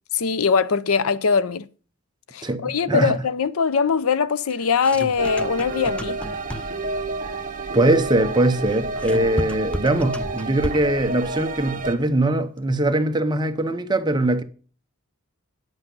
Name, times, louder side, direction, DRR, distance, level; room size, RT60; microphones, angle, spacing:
voice 1, 0.1-1.7 2.3-6.2, left 5 dB, 80° left, 0.6 m, -21 dB
voice 2, 2.4-3.2 7.7-14.4, right 1 dB, 20° right, 0.9 m, -21 dB
sound 1, 4.5-6.9 8.6-11.0, left 1 dB, 5° left, 0.6 m, -32 dB
sound 2, 5.2-12.0, right 3 dB, 40° right, 1.3 m, -30 dB
10.0 x 8.1 x 5.4 m
head